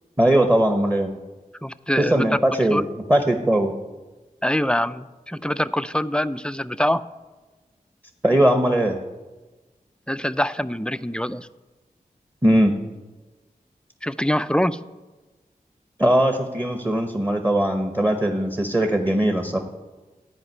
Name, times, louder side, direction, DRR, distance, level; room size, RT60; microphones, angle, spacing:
voice 1, 0.2-1.1 2.0-2.8 3.1-3.7 8.2-9.0 12.4-12.7 16.0-19.6, right 1 dB, 15° right, 4 dB, 1.1 m, -20 dB
voice 2, 1.6-2.2 2.7-2.9 4.4-7.0 10.1-11.5 14.0-14.8, equal, 5° left, 13 dB, 0.4 m, -24 dB
14.5 x 5.1 x 9.4 m, 1.2 s
wide cardioid pair, 95°, 15 cm